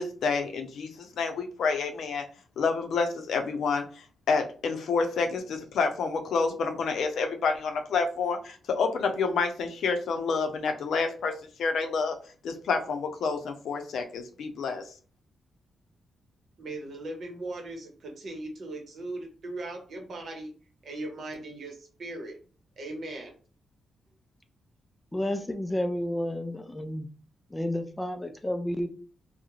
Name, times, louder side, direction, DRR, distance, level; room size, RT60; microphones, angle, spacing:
voice 1, 0.0-2.3 2.6-15.0, left 4 dB, 75° left, 5 dB, 0.5 m, -29 dB
voice 2, 16.6-20.5 20.8-22.4 22.8-23.3, right 2 dB, 55° right, 3 dB, 0.8 m, -38 dB
voice 3, 25.1-27.1 27.5-28.9, left 1 dB, 10° left, 7 dB, 0.3 m, -31 dB
2.4 x 2.0 x 3.0 m, 0.38 s
cardioid pair, 120°, 0 cm